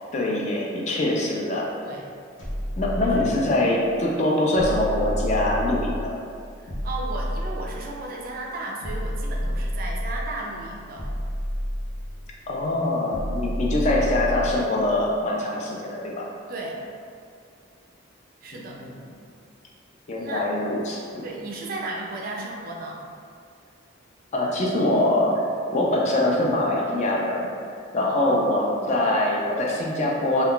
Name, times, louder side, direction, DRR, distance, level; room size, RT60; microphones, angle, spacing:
voice 1, 0.1-1.7 2.8-6.1 12.5-16.3 18.6-18.9 20.1-21.2 24.3-25.4 25.7-27.5 27.9-30.5, left 1 dB, 35° left, -2 dB, 0.3 m, -23 dB
sound 1, 2.4-3.7 4.5-6.2 6.7-8.1 8.8-10.4 11.0-12.4 13.1-14.7, equal, 70° left, 0.8 m, -30 dB
voice 2, 6.6-11.1 16.5-16.7 18.4-18.8 20.2-20.5 21.2-23.0 28.0-29.0, right 2 dB, 45° right, -1 dB, 0.3 m, -35 dB
2.2 x 2.2 x 3.6 m, 2.3 s
head